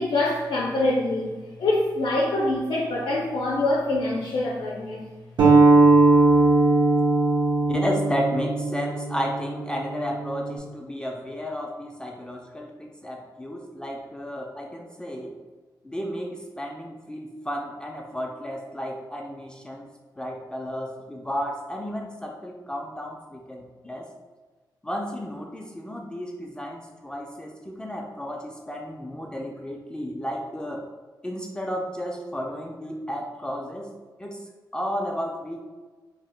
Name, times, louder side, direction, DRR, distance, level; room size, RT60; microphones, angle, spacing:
voice 1, 0.0-1.3 1.6-5.1, left 2 dB, 80° left, -3 dB, 0.4 m, -25 dB
sound 1, 5.4-10.6, right 3 dB, 75° right, 0.6 m, -19 dB
voice 2, 7.7-15.4 15.8-19.9 20.2-24.1 24.8-30.9 31.2-33.9 34.2-34.4 34.7-35.6, equal, 10° left, -1 dB, 0.3 m, -33 dB
2.7 x 2.1 x 3.2 m, 1.3 s
wide cardioid pair, 100°, 8 cm